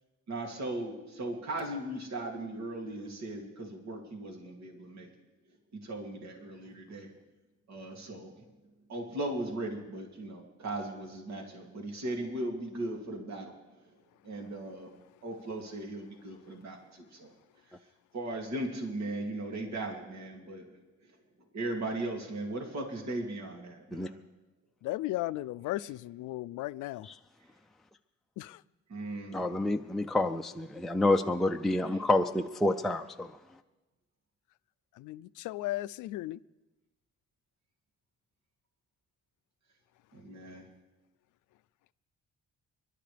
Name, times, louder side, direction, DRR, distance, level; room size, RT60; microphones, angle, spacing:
voice 1, 0.3-5.1 5.7-7.1 7.7-8.3 8.9-13.6 14.2-14.9 15.2-17.3 18.1-20.7 21.5-24.2 28.9-29.6 40.1-40.7, right 1 dB, 60° right, 1 dB, 2.7 m, -38 dB
voice 2, 24.8-27.1 28.4-28.6 35.0-36.4, left 17 dB, 85° left, 18 dB, 0.5 m, -36 dB
voice 3, 29.3-33.3, left 2 dB, ahead, 5 dB, 0.5 m, -28 dB
29.5 x 11.5 x 3.4 m, 1.1 s
cardioid pair, 90°, 30 cm